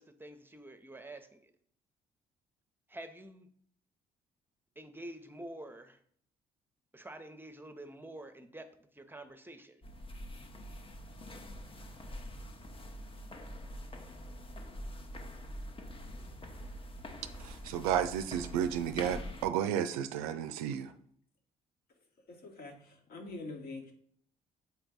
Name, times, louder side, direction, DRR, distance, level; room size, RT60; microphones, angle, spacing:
voice 1, 0.0-1.5 2.9-3.5 4.8-6.0 6.9-9.8, right 1 dB, 10° right, 0.8 m, -48 dB
sound 1, 9.8-19.5, left 1 dB, 30° left, 0.9 m, -45 dB
voice 2, 17.4-20.9, right 9 dB, 70° right, 0.4 m, -32 dB
voice 3, 22.3-23.9, left 2 dB, 50° left, 1.3 m, -45 dB
7.1 x 4.4 x 3.9 m
figure-of-eight pair, 45°, 19 cm